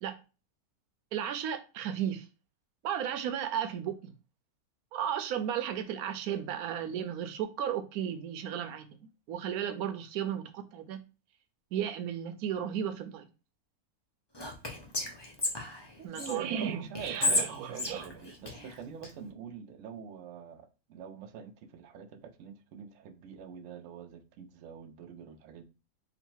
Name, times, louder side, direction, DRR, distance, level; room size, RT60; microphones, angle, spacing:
voice 1, 1.1-2.2 2.8-4.1 4.9-9.0 9.3-11.0 11.7-13.3 16.0-18.1, right 9 dB, 90° right, 1.1 m, -34 dB
Whispering, 14.3-16.3 16.9-19.1, left 2 dB, 30° left, 0.5 m, -33 dB
voice 2, 16.0-25.6, right 6 dB, 65° right, 0.9 m, -46 dB
3.9 x 2.2 x 4.5 m
omnidirectional pair, 1.5 m